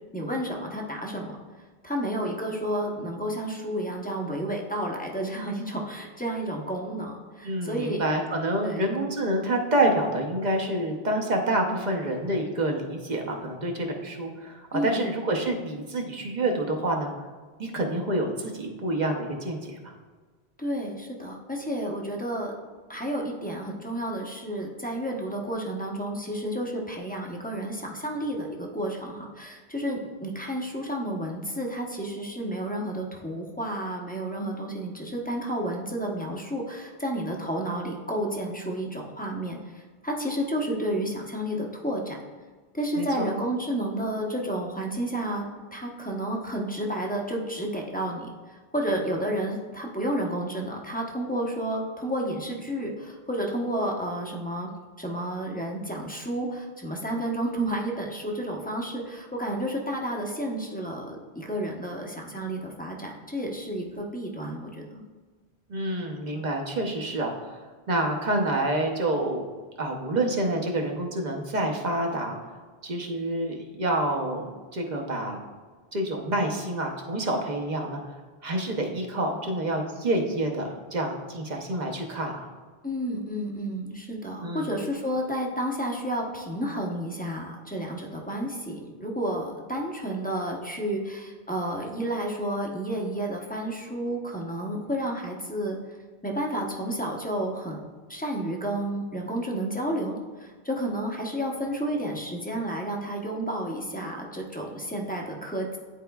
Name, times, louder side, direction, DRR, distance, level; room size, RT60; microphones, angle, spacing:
voice 1, 0.1-1.4 1.8-8.1 8.6-9.0 14.7-15.0 20.6-22.5 22.9-42.2 42.7-54.7 55.0-65.0 82.8-95.8 96.2-97.8 98.1-105.8, right 1 dB, 10° left, -1 dB, 0.7 m, -31 dB
voice 2, 7.4-17.1 17.6-19.9 43.0-43.3 65.7-69.4 69.8-72.3 72.8-75.4 75.9-78.0 78.4-82.5 84.4-84.7, right 1 dB, 45° right, 1 dB, 0.8 m, -28 dB
10.5 x 4.3 x 2.3 m, 1.4 s
omnidirectional pair, 1.1 m